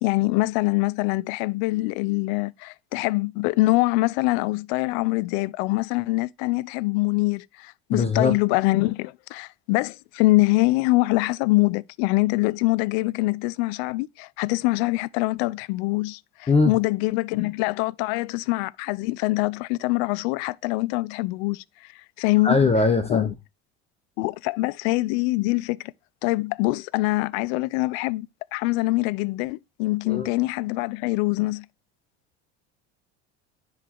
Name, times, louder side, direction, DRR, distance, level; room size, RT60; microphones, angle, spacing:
voice 1, 0.0-21.6 21.9-22.6 23.1-23.3 24.2-25.9 26.2-28.3 28.5-31.7, left 21 dB, 65° left, 0.5 m, -24 dB
voice 2, 7.9-8.3 16.5-16.7 22.4-23.3 30.1-30.3, left 4 dB, 20° left, 1.0 m, -20 dB
9.9 x 4.0 x 4.6 m
hypercardioid pair, 90°, 34 cm